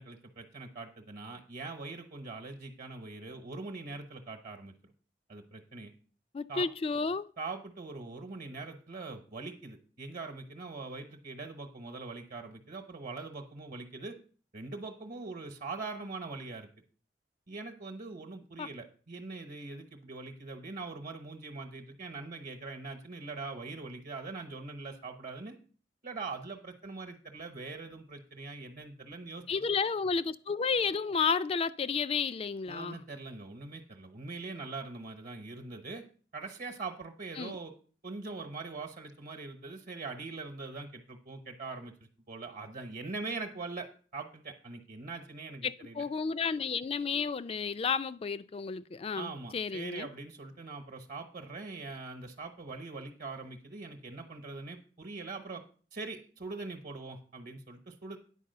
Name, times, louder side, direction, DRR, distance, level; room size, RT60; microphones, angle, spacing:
voice 1, 0.0-4.7 5.3-5.9 6.5-6.7 7.4-14.2 14.5-16.7 17.5-25.6 26.0-29.4 32.7-36.0 36.3-37.7 38.0-41.9 42.3-46.0 49.1-55.6 55.9-58.2, right 3 dB, 50° right, 1.0 m, -42 dB
voice 2, 6.3-7.3 18.6-18.7 29.5-33.0 37.4-37.6 45.6-50.1, left 5 dB, 35° left, 0.3 m, -32 dB
10.0 x 4.7 x 6.6 m
head